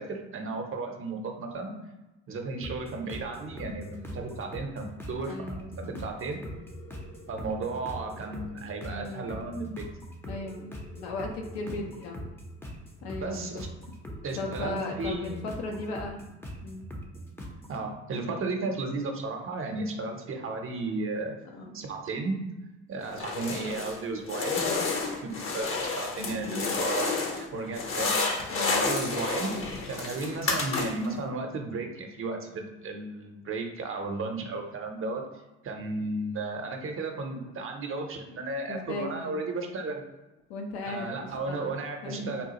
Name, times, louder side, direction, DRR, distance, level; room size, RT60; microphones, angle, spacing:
voice 1, 0.0-1.7 2.3-5.5 5.9-6.4 7.3-9.9 13.2-13.7 14.2-15.5 17.7-21.3 21.7-22.4 22.9-24.9 25.2-28.3 28.7-29.5 29.9-35.2 35.6-40.0 40.8-42.4, right 3 dB, 40° right, 3 dB, 0.7 m, -34 dB
sound 1, 2.6-17.8, equal, 5° left, 0.6 m, -42 dB
voice 2, 5.3-6.0 8.8-9.5 10.3-12.2 13.0-13.7 14.4-16.2 16.6-16.9 21.5-21.9 26.2-26.7 28.1-28.9 38.7-39.4 40.5-41.7 42.0-42.4, left 2 dB, 75° left, 2 dB, 0.7 m, -37 dB
sound 2, 23.1-24.0 24.3-27.5 27.7-31.1, left 3 dB, 40° left, 0.7 m, -30 dB
3.6 x 2.3 x 2.9 m, 1.0 s
hypercardioid pair, 60°, 34 cm